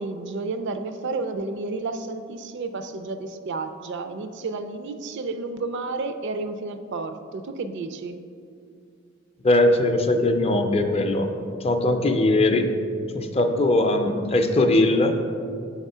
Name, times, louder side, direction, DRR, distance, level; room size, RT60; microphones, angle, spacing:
voice 1, 0.0-8.2, right 3 dB, 60° right, 9 dB, 0.4 m, -31 dB
voice 2, 9.4-11.3 11.6-12.7 13.1-15.1, left 2 dB, 30° left, 5 dB, 0.5 m, -20 dB
7.9 x 3.6 x 5.5 m, 2.4 s
head